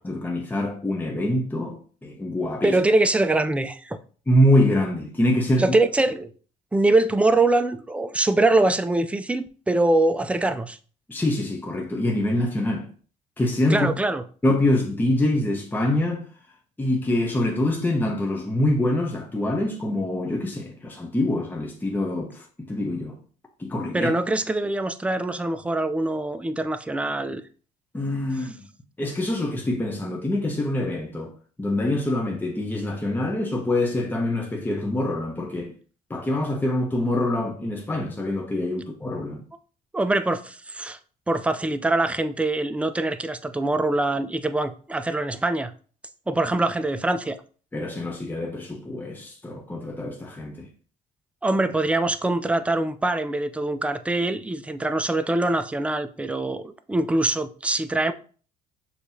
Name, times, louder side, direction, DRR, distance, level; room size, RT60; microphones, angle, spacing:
voice 1, 0.0-2.8 4.3-5.8 11.1-12.9 13.4-13.9 14.4-16.3 16.8-23.2 23.6-24.1 27.9-28.7 29.0-35.7 36.1-39.4 47.7-50.7, left 1 dB, 10° left, 0.8 m, -25 dB
voice 2, 2.6-4.0 5.6-6.3 6.7-10.8 13.7-14.2 23.9-27.4 39.9-41.0 41.3-45.7 46.3-47.4 51.4-58.1, right 2 dB, 5° right, 0.4 m, -23 dB
6.5 x 2.9 x 2.7 m
cardioid pair, 110°, 17 cm